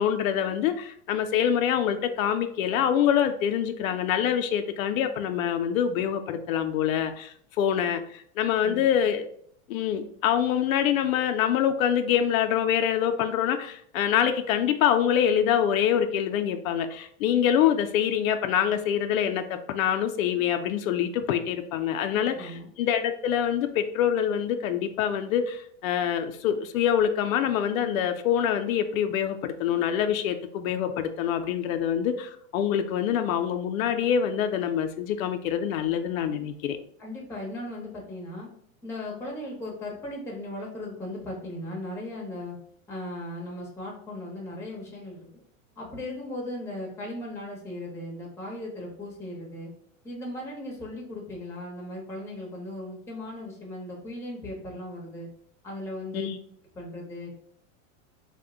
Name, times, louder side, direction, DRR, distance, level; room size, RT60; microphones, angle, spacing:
voice 1, 0.0-9.3 9.7-36.8 56.1-56.4, left 9 dB, 85° left, 7 dB, 0.5 m, -25 dB
voice 2, 22.1-22.7 37.0-38.5 38.8-42.6 42.9-45.3 45.8-49.7 50.0-55.3 55.6-56.3 56.7-57.3, left 1 dB, 5° left, -2 dB, 0.6 m, -37 dB
2.7 x 2.1 x 3.6 m, 0.63 s
supercardioid pair, 150°, 40 cm